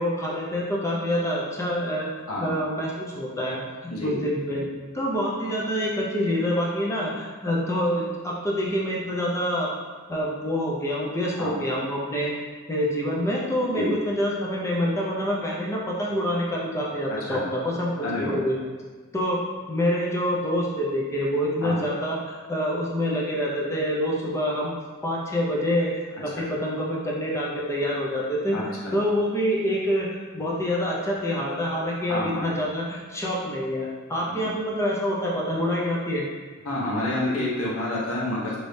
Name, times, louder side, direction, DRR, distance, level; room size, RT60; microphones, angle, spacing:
voice 1, 0.0-2.1 2.4-3.6 4.0-4.7 4.9-9.7 10.1-12.3 12.7-18.6 19.1-19.4 19.7-24.7 25.0-25.9 26.2-28.6 28.9-36.3, equal, 15° left, -4 dB, 0.4 m, -26 dB
voice 2, 2.3-2.6 3.9-4.2 11.4-11.5 13.7-13.9 17.3-17.4 18.0-18.4 21.6-21.8 26.4-26.5 28.5-28.9 32.1-32.5 34.3-34.5 36.6-38.6, left 1 dB, 75° left, -6 dB, 0.9 m, -28 dB
3.1 x 2.7 x 3.2 m, 1.5 s
head